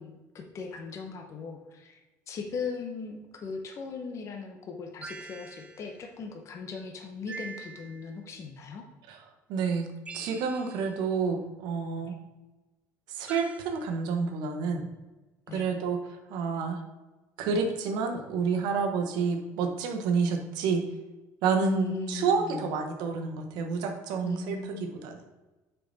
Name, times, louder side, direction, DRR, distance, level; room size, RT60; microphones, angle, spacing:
voice 1, 0.0-2.0 2.3-8.8 11.9-12.2 15.5-15.7 21.6-22.7 24.2-25.0, left 5 dB, 45° left, 3 dB, 0.9 m, -38 dB
sound 1, 5.0-6.0 7.3-8.2 10.1-11.0 13.3-13.8, right 4 dB, 20° right, 0.4 m, -44 dB
voice 2, 9.5-9.9 10.1-12.1 13.1-14.9 15.5-16.8 17.4-20.8 21.4-25.2, right 5 dB, 80° right, 5 dB, 1.0 m, -29 dB
6.4 x 4.7 x 4.1 m, 1.1 s
cardioid pair, 120°, 7 cm